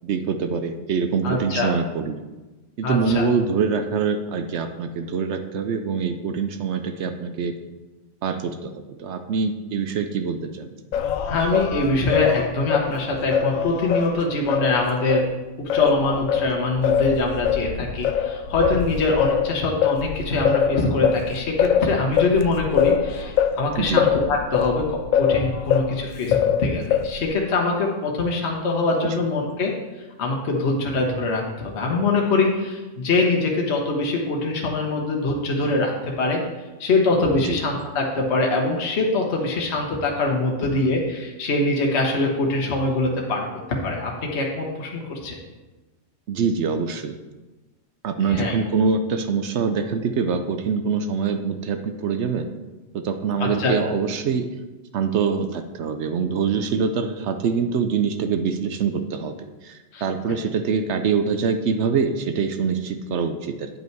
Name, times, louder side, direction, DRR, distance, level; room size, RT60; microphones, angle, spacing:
voice 1, 0.0-2.2 2.8-7.5 8.2-8.7 9.0-10.7 23.8-24.0 29.0-29.1 37.4-37.6 46.3-47.1 48.0-52.5 52.9-54.5 54.9-59.3 59.6-63.7, right 5 dB, 65° right, 8 dB, 0.8 m, -24 dB
voice 2, 1.2-1.7 2.8-3.3 11.3-15.3 15.6-29.7 30.2-36.4 36.8-45.4 48.2-48.6 53.4-53.8 59.9-60.0, left 2 dB, 55° left, 0 dB, 1.3 m, -23 dB
Singing, 10.9-15.3 15.7-26.0 26.3-27.3, left 8 dB, 90° left, 1.0 m, -23 dB
9.1 x 5.5 x 4.5 m, 1.2 s
omnidirectional pair, 1.4 m